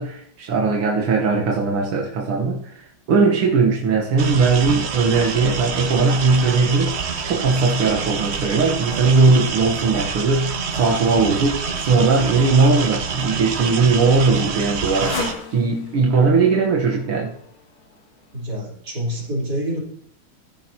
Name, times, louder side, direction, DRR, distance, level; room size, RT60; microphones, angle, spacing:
voice 1, 0.0-2.8 3.1-7.0 7.2-15.2 15.5-17.3, right 4 dB, 90° right, -1 dB, 2.1 m, -19 dB
sound 1, 4.2-15.3, right 5 dB, 65° right, 0.6 m, -27 dB
Motorcycle, 13.6-18.4, left 4 dB, 80° left, 2.4 m, -37 dB
voice 2, 18.3-19.8, equal, 50° right, -5 dB, 4.1 m, -27 dB
14.5 x 10.5 x 2.9 m, 0.68 s
omnidirectional pair, 2.3 m